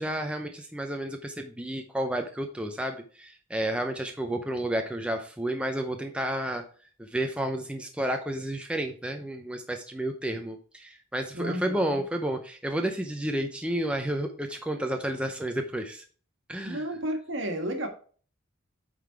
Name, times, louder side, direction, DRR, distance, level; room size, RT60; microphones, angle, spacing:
voice 1, 0.0-6.6 7.0-16.0 16.5-16.8, right 1 dB, 5° right, 4 dB, 0.5 m, -31 dB
voice 2, 11.3-12.0 16.6-17.9, right 1 dB, 65° right, 5 dB, 1.5 m, -32 dB
8.4 x 3.9 x 4.5 m, 0.42 s
head